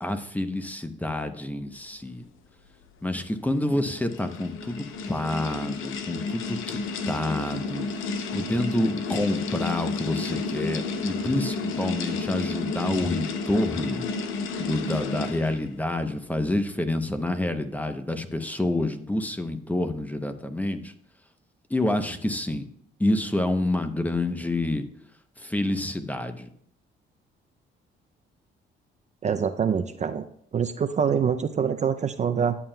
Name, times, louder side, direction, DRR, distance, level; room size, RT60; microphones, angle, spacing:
voice 1, 0.0-2.2 3.0-6.8 7.1-14.1 14.6-20.9 21.7-22.7 23.0-24.8 25.4-26.5, left 1 dB, 10° left, 8 dB, 0.7 m, -28 dB
sound 1, 3.5-15.7, left 4 dB, 85° left, 0.7 m, -31 dB
voice 2, 29.2-30.3 30.5-32.6, right 7 dB, 35° right, 8 dB, 0.4 m, -25 dB
11.0 x 7.1 x 2.2 m, 0.67 s
cardioid pair, 90°, 20 cm